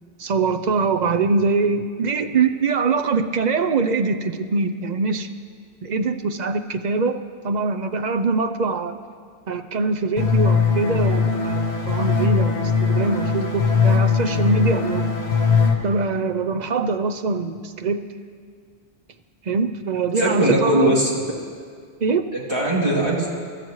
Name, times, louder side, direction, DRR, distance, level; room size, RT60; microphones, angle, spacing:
voice 1, 0.2-5.3 5.8-7.2 7.4-9.0 9.5-15.1 15.8-18.0 19.5-21.1 22.0-22.2, right 4 dB, 50° right, 9 dB, 0.6 m, -23 dB
sound 1, 10.2-15.7, left 5 dB, 85° left, 1.6 m, -20 dB
voice 2, 20.2-21.1 22.3-23.3, right 1 dB, 25° right, -5 dB, 2.8 m, -20 dB
24.0 x 13.0 x 3.1 m, 2.1 s
omnidirectional pair, 1.1 m